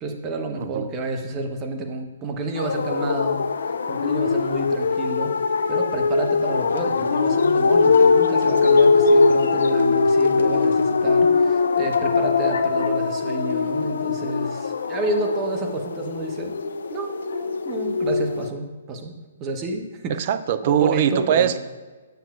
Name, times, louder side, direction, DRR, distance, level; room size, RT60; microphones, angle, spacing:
voice 1, 0.0-3.4 3.9-5.4 5.7-16.5 16.9-20.2 20.6-21.6, right 2 dB, 25° right, 4 dB, 0.9 m, -30 dB
voice 2, 0.6-0.9 20.1-21.6, right 9 dB, 45° right, 11 dB, 0.4 m, -21 dB
sound 1, 2.6-18.5, left 4 dB, 70° left, 0.4 m, -21 dB
9.2 x 7.1 x 2.4 m, 1.3 s
figure-of-eight pair, 125°, 0 cm